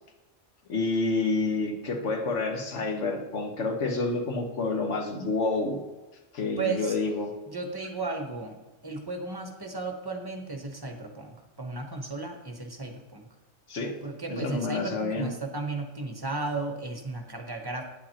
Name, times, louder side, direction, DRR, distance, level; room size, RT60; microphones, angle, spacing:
voice 1, 0.7-5.8 6.3-7.3 13.7-13.9 14.3-15.3, left 3 dB, 90° left, 3 dB, 1.4 m, -28 dB
voice 2, 6.6-7.0 7.5-8.6 8.8-13.3 14.0-17.8, right 3 dB, 20° right, 3 dB, 0.9 m, -34 dB
9.2 x 7.4 x 2.9 m, 1.1 s
omnidirectional pair, 1.2 m